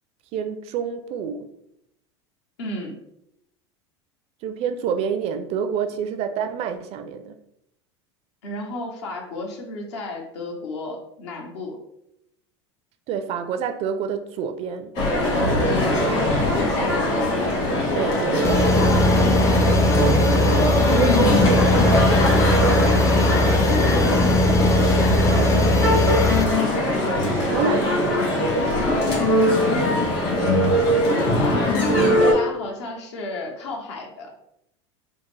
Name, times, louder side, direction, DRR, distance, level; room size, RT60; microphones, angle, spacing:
voice 1, 0.3-1.5 4.4-7.4 13.1-14.9 17.9-18.7 19.5-23.2 25.1-28.5, right 7 dB, 45° right, 0.4 m, -28 dB
voice 2, 2.6-3.0 8.4-11.8 15.4-16.1 16.5-17.1 23.9-24.7 31.0-31.8 32.2-34.3, left 2 dB, 75° left, 0.8 m, -33 dB
Male speech man speaking, 15.0-32.3, left 1 dB, 50° left, 1.4 m, -21 dB
sound 1, 18.4-26.4, left 1 dB, 20° left, 0.4 m, -19 dB
3.4 x 2.1 x 3.2 m
hypercardioid pair, 95°, 15 cm